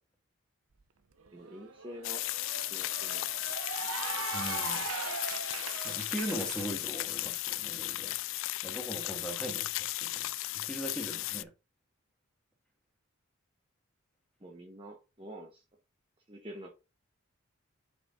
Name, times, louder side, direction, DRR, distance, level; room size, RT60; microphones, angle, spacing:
Cheering / Applause, 0.8-0.9 1.2-6.7, right 5 dB, 75° right, 0.8 m, -40 dB
voice 1, 1.3-2.2 2.6-3.2 4.1-4.4 4.7-4.9 14.4-15.6 16.3-16.7, right 1 dB, 25° right, 1.1 m, -47 dB
sound 1, 2.0-11.4, left 17 dB, 60° left, 0.3 m, -35 dB
voice 2, 4.3-4.8 5.8-8.2 8.6-11.5, right 1 dB, 5° left, 1.9 m, -40 dB
6.3 x 5.2 x 3.8 m
head